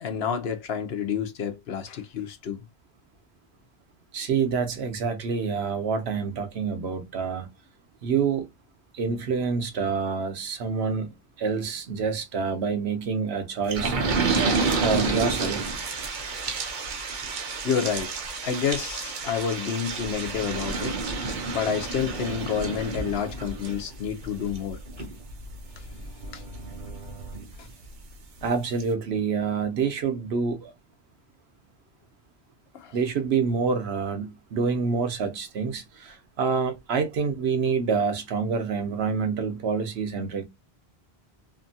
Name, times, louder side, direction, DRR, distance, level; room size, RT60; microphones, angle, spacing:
voice 1, 0.0-2.6 17.6-18.1 18.4-21.0 21.5-25.1 26.3-26.4 32.7-33.0, left 7 dB, 70° left, 0.9 m, -29 dB
voice 2, 4.1-7.5 8.0-8.5 8.9-14.0 14.7-15.8 28.4-30.7 32.9-40.4, right 5 dB, 75° right, 1.0 m, -27 dB
sound 1, 13.7-28.0 28.4-28.5 28.8-28.9, right 4 dB, 50° right, 0.8 m, -30 dB
2.8 x 2.5 x 2.6 m
omnidirectional pair, 1.1 m